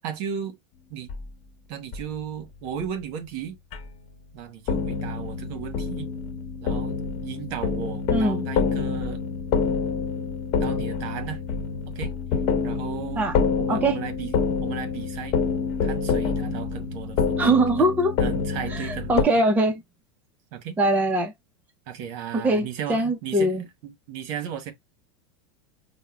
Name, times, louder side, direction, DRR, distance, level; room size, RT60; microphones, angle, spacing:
voice 1, 0.0-0.6 0.9-1.1 1.7-3.6 4.3-6.1 6.6-6.9 7.2-9.2 10.6-11.4 11.9-12.1 12.6-14.3 14.6-15.3 15.8-19.4 20.5-20.8 21.9-24.7, right 8 dB, 55° right, 1.1 m, -35 dB
sound 1, 1.1-1.2 1.9-2.0 2.8-2.9 3.7-3.9 4.7-19.2, left 5 dB, 45° left, 1.0 m, -27 dB
voice 2, 8.1-8.5 13.2-13.4 13.7-14.0 17.4-18.1 18.7-19.8 20.8-21.3 22.3-23.6, right 1 dB, 10° right, 0.6 m, -22 dB
5.4 x 2.1 x 2.2 m
supercardioid pair, 130°, 14 cm